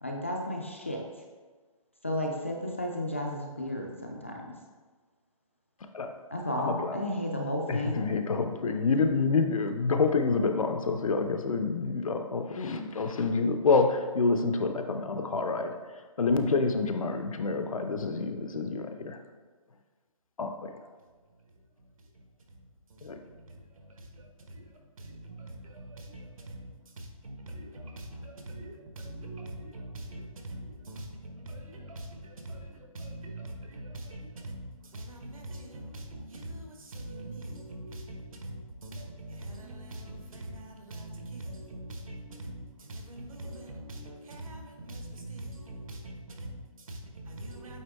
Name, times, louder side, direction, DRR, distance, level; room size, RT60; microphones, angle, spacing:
voice 1, 0.0-1.0 2.0-4.4 6.3-8.1, left 1 dB, 20° left, 0 dB, 0.4 m, -33 dB
voice 2, 6.6-7.0 7.7-15.8 16.2-19.2 20.4-20.7 23.0-23.2, left 4 dB, 70° left, 6 dB, 0.7 m, -27 dB
voice 3, 22.1-47.8, right 1 dB, 75° right, 2 dB, 1.3 m, -43 dB
8.5 x 3.4 x 3.5 m, 1.4 s
hypercardioid pair, 180°, 18 cm